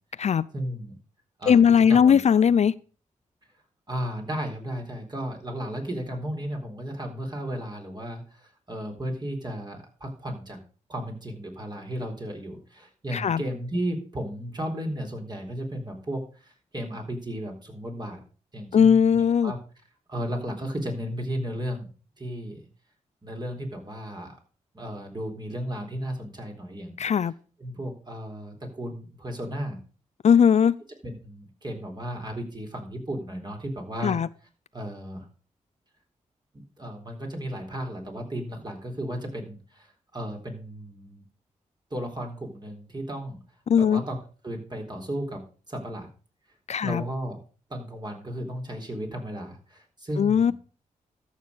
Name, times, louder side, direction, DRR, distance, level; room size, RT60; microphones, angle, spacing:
voice 1, 0.1-0.9 1.4-1.6 1.9-2.5 3.9-10.6 10.9-18.2 18.5-19.6 20.1-21.9 22.2-22.6 23.2-24.4 24.7-27.0 27.2-27.3 27.6-29.8 31.0-34.2 34.7-35.3 36.5-41.2 41.9-43.4 43.8-44.2 44.4-45.4 45.7-46.1 46.8-47.4 47.7-50.5, equal, 30° right, 4.0 m, -34 dB
voice 2, 1.5-2.7 13.1-13.4 18.7-19.5 27.0-27.3 30.2-30.7 34.0-34.3 43.7-44.0 46.7-47.0 50.2-50.5, left 7 dB, 55° left, 0.4 m, -19 dB
13.0 x 6.5 x 5.2 m
cardioid pair, 55°, 14 cm